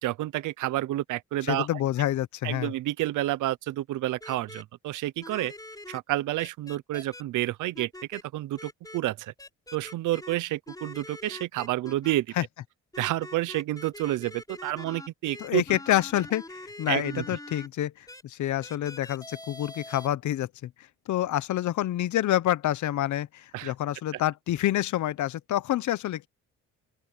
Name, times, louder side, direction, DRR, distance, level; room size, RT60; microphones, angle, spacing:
voice 1, 0.0-1.7 2.4-5.5 5.9-9.3 9.7-12.3 13.0-15.6 16.9-17.2 23.5-23.7 24.1-24.2, right 16 dB, 80° right, 0.8 m, -29 dB
voice 2, 1.5-2.7 12.4-12.5 15.4-17.9 18.2-20.7 21.1-26.3, left 13 dB, 70° left, 1.0 m, -27 dB
sound 1, 4.2-4.6 5.2-6.0 6.4-7.2 7.7-8.2 8.6-9.0 9.4-10.4 10.7-12.1 12.9-17.7 18.1-18.2 18.6-20.1, left 1 dB, 10° left, 5.1 m, -44 dB
open air
cardioid pair, 90°, 30 cm